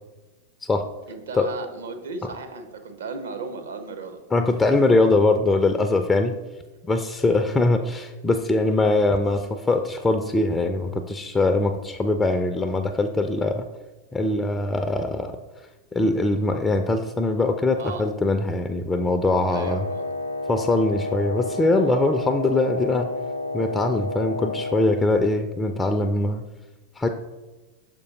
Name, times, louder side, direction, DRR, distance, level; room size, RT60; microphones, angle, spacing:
voice 1, 1.1-4.2 17.8-18.1 19.5-20.0, right 4 dB, 65° right, 6 dB, 0.8 m, -35 dB
voice 2, 4.3-6.4 6.9-13.6 14.1-15.3 15.9-19.8 20.5-23.1 23.5-26.4 27.0-27.1, left 2 dB, 15° left, 6 dB, 0.4 m, -22 dB
Wind instrument woodwind instrument, 19.6-24.9, left 2 dB, 80° left, 0.4 m, -30 dB
6.7 x 5.2 x 4.0 m, 1.1 s
figure-of-eight pair, 90°, 0 cm